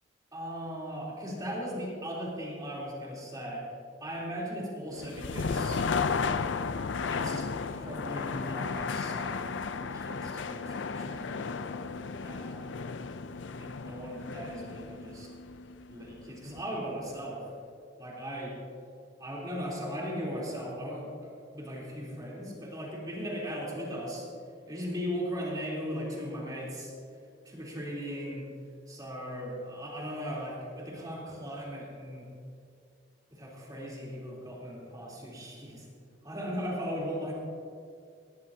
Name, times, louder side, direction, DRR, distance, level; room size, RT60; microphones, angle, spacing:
voice 1, 0.3-3.7 4.0-5.8 7.1-11.9 12.2-12.8 13.6-15.3 15.9-17.5 18.0-18.6 19.2-24.3 24.7-26.9 27.4-28.5 28.9-32.3 33.3-35.9 36.2-37.3, equal, 20° right, -5 dB, 3.5 m, -38 dB
sound 1, 4.9-16.8, left 5 dB, 75° left, 0.5 m, -34 dB
19.5 x 14.5 x 2.8 m, 2.3 s
head